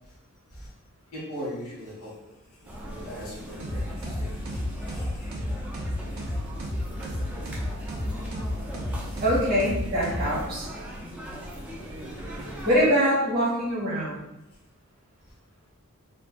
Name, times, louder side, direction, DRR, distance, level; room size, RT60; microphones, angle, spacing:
voice 1, 1.1-2.1 2.9-5.4 9.1-9.2, equal, 80° left, -6 dB, 1.3 m, -40 dB
sound 1, 2.6-12.9, equal, 5° right, 0.4 m, -40 dB
sound 2, 3.6-10.8, left 1 dB, 65° right, 0.6 m, -32 dB
voice 2, 9.2-10.7 12.6-14.2, equal, 45° right, -6 dB, 1.2 m, -24 dB
3.1 x 2.2 x 2.5 m, 0.94 s
head